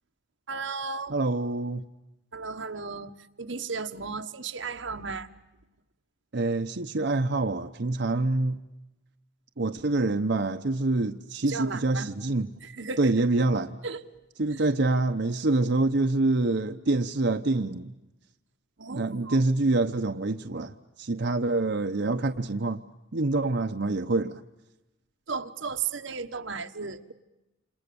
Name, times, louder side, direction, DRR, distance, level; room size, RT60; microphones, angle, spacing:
voice 1, 0.5-1.1 2.3-3.1 3.4-5.3 11.4-12.1 12.6-13.1 13.8-14.0 14.5-14.6 18.8-19.6 25.3-27.1, right 5 dB, 90° right, 1.4 m, -35 dB
voice 2, 1.1-1.8 6.3-8.6 9.6-12.5 13.0-13.8 14.4-17.9 18.8-22.8 23.1-24.4, right 2 dB, 65° right, 0.9 m, -26 dB
28.5 x 27.5 x 7.0 m
head